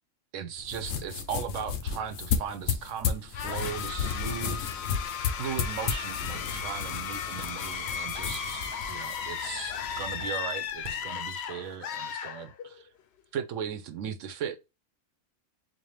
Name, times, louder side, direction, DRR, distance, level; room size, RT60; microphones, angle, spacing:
voice 1, 0.3-4.9 5.4-12.9 13.3-14.7, right 8 dB, 80° right, 0.9 m, -37 dB
sound 1, 0.6-10.3, left 7 dB, 90° left, 1.0 m, -34 dB
sound 2, 3.3-12.9, left 7 dB, 65° left, 0.8 m, -36 dB
sound 3, 9.9-11.7, right 4 dB, 50° right, 0.7 m, -53 dB
4.0 x 2.6 x 3.2 m
omnidirectional pair, 1.3 m